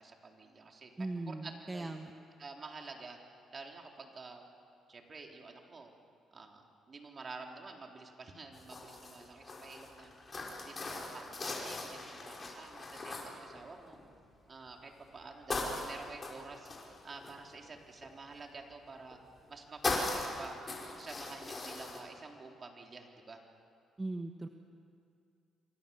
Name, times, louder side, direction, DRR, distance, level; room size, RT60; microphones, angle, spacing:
voice 1, 0.0-1.9 2.4-3.2 3.5-4.4 4.9-5.9 6.3-10.1 10.6-14.0 14.5-16.7 17.0-19.2 19.5-19.8 20.1-20.6 20.9-23.4, right 3 dB, 40° right, 2 dB, 3.7 m, -49 dB
voice 2, 1.0-2.1 24.0-24.5, right 2 dB, 20° right, 5 dB, 1.3 m, -39 dB
sound 1, 8.5-14.1 14.7-15.1 15.5-18.1 19.1-19.5 19.8-22.0, left 3 dB, 35° left, 5.5 m, -39 dB
28.0 x 24.5 x 7.2 m, 2.4 s
cardioid pair, 90°, 0 cm